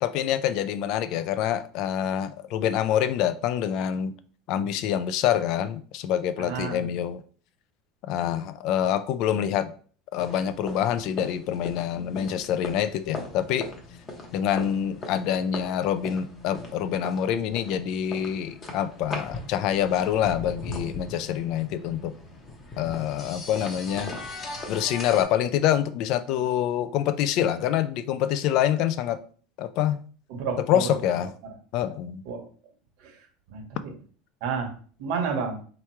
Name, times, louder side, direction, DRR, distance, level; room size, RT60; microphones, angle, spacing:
voice 1, 0.0-4.1 4.5-7.2 8.1-9.7 10.1-13.7 14.3-22.1 22.8-24.1 24.7-29.2 29.6-30.0 30.7-31.3 31.7-32.2, left 10 dB, 50° left, 0.3 m, -26 dB
voice 2, 6.4-6.9 30.3-30.9 31.4-31.5 32.2-32.5 33.0-33.2 33.5-33.9 34.4-34.7 35.0-35.6, right 5 dB, 65° right, 1.1 m, -31 dB
sound 1, 10.2-25.2, left 2 dB, 20° left, 0.8 m, -39 dB
3.5 x 2.9 x 4.5 m
cardioid pair, 160°, 0 cm